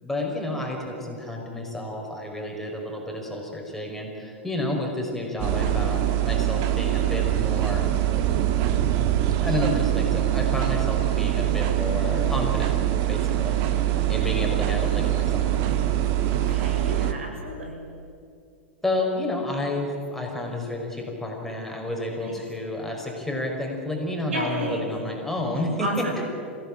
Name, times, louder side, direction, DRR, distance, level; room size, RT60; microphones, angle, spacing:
voice 1, 0.0-8.2 9.4-12.8 13.1-15.5 18.8-25.9, left 1 dB, 5° left, 0 dB, 5.5 m, -30 dB
sound 1, 5.4-17.1, right 12 dB, 50° right, 1.8 m, -23 dB
voice 2, 16.3-17.8 22.2-22.3 24.3-24.8 25.8-26.2, equal, 80° right, 2 dB, 6.6 m, -32 dB
26.5 x 16.5 x 8.8 m, 2.4 s
hypercardioid pair, 100°, 6 cm